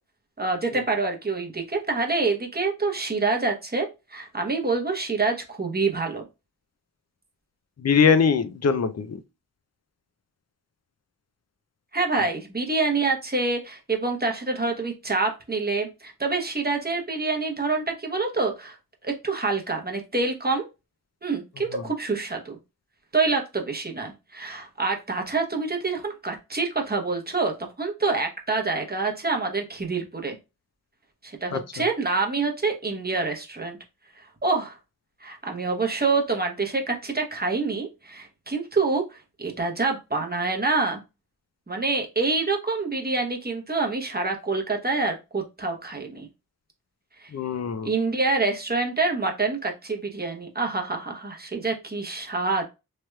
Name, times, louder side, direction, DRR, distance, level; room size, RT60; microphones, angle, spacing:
voice 1, 0.4-6.2 11.9-18.8 19.0-20.7 21.2-22.6 23.1-30.4 31.2-33.8 34.4-34.8 35.2-41.0 41.7-46.3 47.2-47.3 47.8-52.6, right 3 dB, 25° right, 0.8 m, -26 dB
voice 2, 7.8-9.2 31.5-31.6 47.3-47.9, left 6 dB, 45° left, 0.4 m, -21 dB
3.2 x 2.9 x 2.2 m
wide cardioid pair, 60°, 39 cm